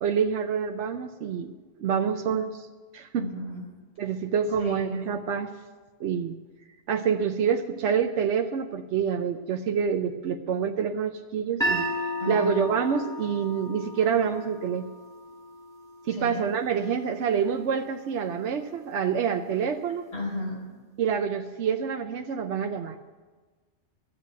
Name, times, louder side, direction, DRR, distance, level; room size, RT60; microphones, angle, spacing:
voice 1, 0.0-2.7 2.9-3.2 4.0-5.5 6.0-6.4 6.9-11.9 12.3-14.9 16.1-20.0 21.0-23.0, right 7 dB, 80° right, 5 dB, 1.0 m, -27 dB
voice 2, 3.1-3.6 4.6-5.1 12.2-12.6 16.1-16.4 20.1-20.6, left 1 dB, 25° left, -4 dB, 4.8 m, -34 dB
sound 1, 11.6-17.8, equal, 5° left, 1.6 m, -34 dB
13.5 x 7.5 x 9.3 m, 1.3 s
omnidirectional pair, 1.2 m